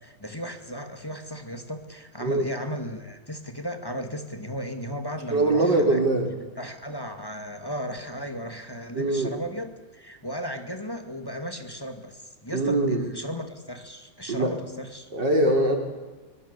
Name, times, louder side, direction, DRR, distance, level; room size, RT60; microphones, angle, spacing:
voice 1, 0.0-6.0 6.6-15.1, equal, 10° left, 7 dB, 2.0 m, -35 dB
voice 2, 5.3-6.3 8.9-9.3 12.5-13.0 14.3-14.5 15.1-15.8, right 2 dB, 60° right, 4 dB, 4.8 m, -22 dB
24.0 x 22.5 x 8.3 m, 1.2 s
omnidirectional pair, 2.2 m